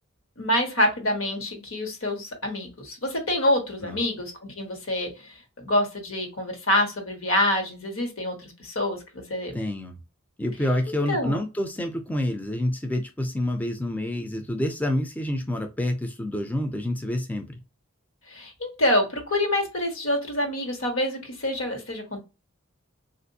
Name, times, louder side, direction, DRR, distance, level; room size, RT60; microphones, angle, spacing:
voice 1, 0.4-9.6 11.1-11.4 18.3-22.2, left 1 dB, 75° left, 3 dB, 1.2 m, -26 dB
voice 2, 9.5-10.0 10.4-17.4, left 1 dB, 10° left, 4 dB, 0.3 m, -28 dB
3.8 x 2.5 x 2.6 m, 0.28 s
head